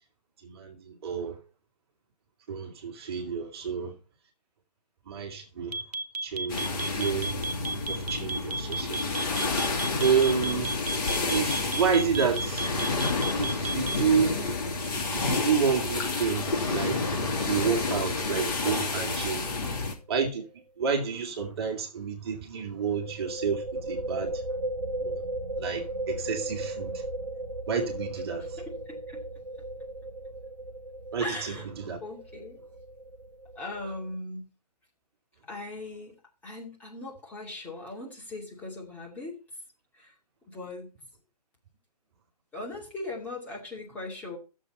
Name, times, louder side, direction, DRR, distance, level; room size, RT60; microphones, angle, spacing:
voice 1, 0.4-1.4 2.5-3.9 5.1-5.8 6.2-7.3 7.9-9.2 10.0-10.7 11.3-12.7 13.3-14.4 15.1-19.5 20.1-20.4 20.8-24.4 25.0-25.2 25.6-27.0 27.7-28.6 31.1-31.5 31.8-32.0, right 6 dB, 40° right, 2.6 m, -29 dB
sound 1, 5.7-14.1, right 2 dB, 70° right, 0.9 m, -32 dB
sound 2, 6.5-19.9, left 3 dB, 35° left, 2.9 m, -30 dB
voice 2, 19.4-19.9 28.4-29.2 31.2-31.7 32.0-32.6 33.5-34.5 35.5-36.1 36.4-39.4 39.9-40.2 40.5-40.9 42.5-44.4, left 2 dB, 10° left, 2.4 m, -39 dB
sound 3, 19.7-19.9 20.2-20.3 22.8-34.1, right 1 dB, 90° right, 1.4 m, -36 dB
13.0 x 7.4 x 4.2 m
figure-of-eight pair, 140°, 21 cm